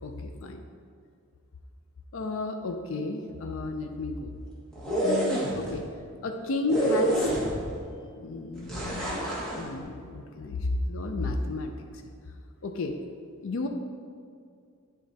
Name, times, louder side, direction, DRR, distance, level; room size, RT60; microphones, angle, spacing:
voice 1, 0.0-0.6 2.1-4.4 5.0-5.9 6.2-7.3 8.0-12.0 12.6-13.0 13.4-13.7, left 2 dB, 65° left, 5 dB, 0.5 m, -33 dB
sound 1, 4.7-5.7 6.7-7.8 8.7-9.6, right 1 dB, 5° left, 1.3 m, -27 dB
9.3 x 3.8 x 4.0 m, 2.4 s
head